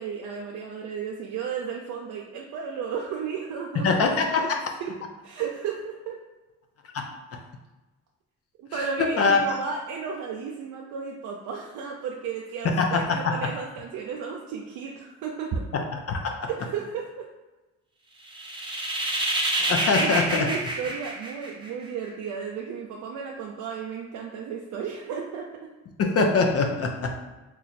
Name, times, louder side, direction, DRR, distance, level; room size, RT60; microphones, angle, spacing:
voice 1, 0.0-4.5 4.8-4.9 5.2-6.2 8.6-15.7 16.5-17.3 18.7-18.9 20.0-25.5, right 6 dB, 80° right, -1 dB, 0.5 m, -34 dB
voice 2, 3.8-4.6 6.9-7.0 9.0-9.6 12.6-13.4 15.7-15.8 16.1-16.3 19.6-20.5 26.0-27.1, left 4 dB, 50° left, 3 dB, 0.6 m, -23 dB
sound 1, 18.3-21.9, right 1 dB, 15° right, 0.8 m, -27 dB
3.0 x 2.3 x 4.1 m, 1.1 s
cardioid pair, 90°, 30 cm